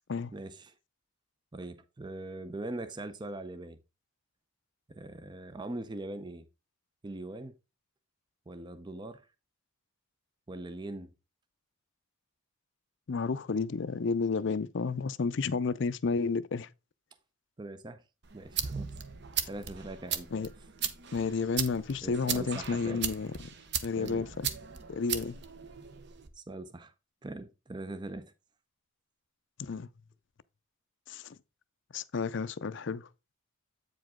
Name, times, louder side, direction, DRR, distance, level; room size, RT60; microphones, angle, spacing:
voice 1, 0.3-0.7 1.5-3.8 4.9-6.5 7.0-7.6 8.5-9.3 10.5-11.1 17.6-18.0 18.3-18.9 19.4-20.3 22.0-23.1 24.0-24.2 26.4-26.9 27.2-28.3, right 2 dB, 20° right, 0.5 m, -41 dB
voice 2, 13.1-16.7 20.3-20.5 21.1-23.3 23.8-24.5 24.9-25.4 29.6-29.9 31.1-31.4 31.9-33.1, left 4 dB, 55° left, 0.5 m, -31 dB
sound 1, 18.2-26.3, right 8 dB, 50° right, 0.7 m, -37 dB
8.4 x 5.1 x 3.6 m
head